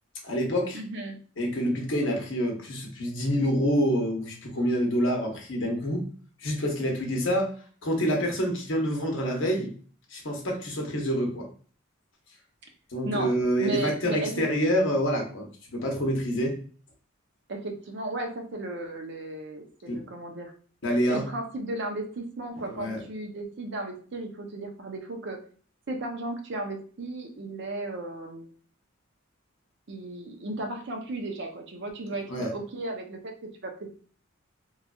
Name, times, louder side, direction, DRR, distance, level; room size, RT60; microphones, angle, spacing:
voice 1, 0.2-0.8 1.4-6.0 6.4-7.5 7.8-9.7 10.1-11.5 12.9-16.6 19.9-20.0 20.8-21.2 22.6-23.0 32.3-32.5, equal, 65° left, 1 dB, 0.9 m, -27 dB
voice 2, 0.7-1.2 12.6-12.7 13.0-13.3 13.6-14.5 17.5-20.5 21.1-25.4 25.9-28.5 29.9-34.0, right 2 dB, 60° right, 3 dB, 0.6 m, -35 dB
3.1 x 2.5 x 2.3 m, 0.42 s
head